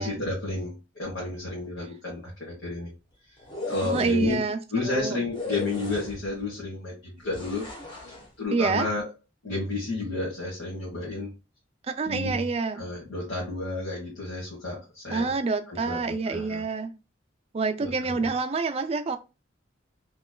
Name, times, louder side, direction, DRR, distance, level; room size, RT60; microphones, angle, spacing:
voice 1, 0.0-2.9 3.7-4.5 4.7-7.7 8.1-9.1 9.4-11.3 12.0-12.4 12.7-15.3 15.7-16.6 17.8-18.3, left 2 dB, 65° left, 1.4 m, -31 dB
sound 1, 3.4-4.3 5.3-6.4 7.3-8.3, left 2 dB, 25° left, 1.0 m, -37 dB
voice 2, 3.9-4.6 4.8-5.2 8.5-8.9 12.0-12.8 15.1-16.9 17.5-19.2, right 4 dB, 30° right, 0.3 m, -27 dB
3.2 x 3.0 x 2.2 m
head